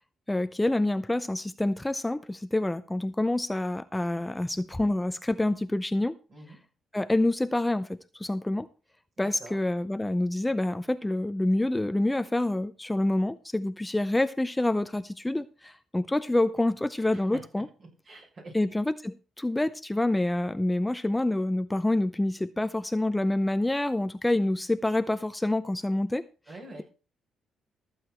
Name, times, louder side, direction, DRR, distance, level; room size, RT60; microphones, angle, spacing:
voice 1, 0.3-6.1 6.9-8.7 9.2-17.7 18.5-26.2, left 1 dB, 10° left, 0.5 m, -27 dB
voice 2, 9.2-9.6 17.1-18.6 26.5-26.8, right 2 dB, 50° right, 7.3 m, -46 dB
14.5 x 8.2 x 4.4 m
cardioid pair, 90°, 0 cm